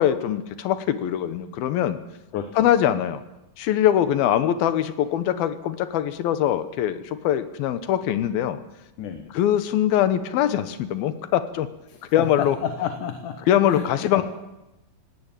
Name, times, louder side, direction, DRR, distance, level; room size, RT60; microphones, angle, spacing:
voice 1, 0.0-2.0 2.6-3.2 3.6-8.6 9.3-11.7 12.1-12.6 13.5-14.2, left 11 dB, 85° left, 12 dB, 3.1 m, -22 dB
voice 2, 2.3-2.7 9.0-9.3 11.9-13.4 13.7-13.9 14.1-14.2, left 8 dB, 65° left, 7 dB, 2.7 m, -31 dB
18.0 x 17.5 x 9.1 m, 0.94 s
omnidirectional pair, 4.2 m